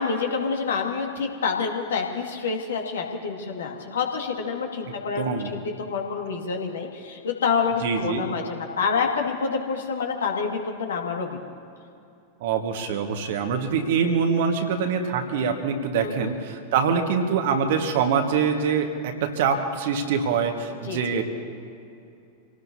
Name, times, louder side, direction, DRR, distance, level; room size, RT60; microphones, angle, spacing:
voice 1, 0.0-11.3 16.0-16.3 20.8-21.2, left 5 dB, 65° left, 2 dB, 2.1 m, -27 dB
voice 2, 5.2-5.5 7.8-8.2 12.4-21.2, right 6 dB, 55° right, 4 dB, 1.7 m, -24 dB
27.0 x 18.0 x 2.8 m, 2.6 s
figure-of-eight pair, 90°, 0 cm